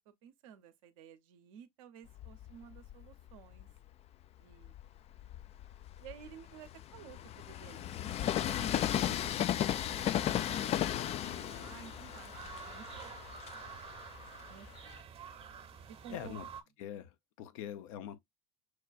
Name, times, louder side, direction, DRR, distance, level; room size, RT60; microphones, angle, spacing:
voice 1, 0.1-3.7 4.4-4.7 6.0-9.2 9.5-13.4 14.5-15.0 15.9-16.4, right 9 dB, 70° right, 0.8 m, -54 dB
Train, 2.1-3.8 4.4-15.0, left 11 dB, 35° left, 0.3 m, -36 dB
sound 1, 9.9-16.6, right 6 dB, 35° right, 0.8 m, -50 dB
voice 2, 16.1-16.5 16.8-18.2, left 10 dB, 70° left, 0.7 m, -44 dB
6.3 x 2.2 x 2.4 m
hypercardioid pair, 75°, 18 cm